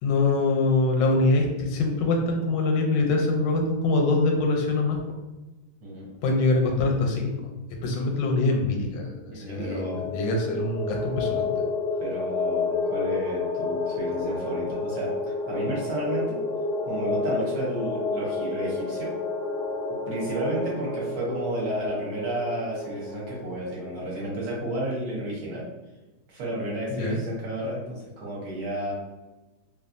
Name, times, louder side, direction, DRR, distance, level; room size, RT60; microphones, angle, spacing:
voice 1, 0.0-5.0 6.2-7.3 7.8-11.6 26.9-27.2, left 2 dB, 85° left, 1 dB, 1.3 m, -24 dB
voice 2, 9.3-10.1 12.0-15.1 15.5-16.4 16.8-19.1 20.1-25.7 26.3-28.9, right 1 dB, 65° right, -4 dB, 1.2 m, -32 dB
sound 1, 9.5-23.9, left 3 dB, 65° left, 0.8 m, -30 dB
3.0 x 2.3 x 2.5 m, 1.1 s
omnidirectional pair, 1.9 m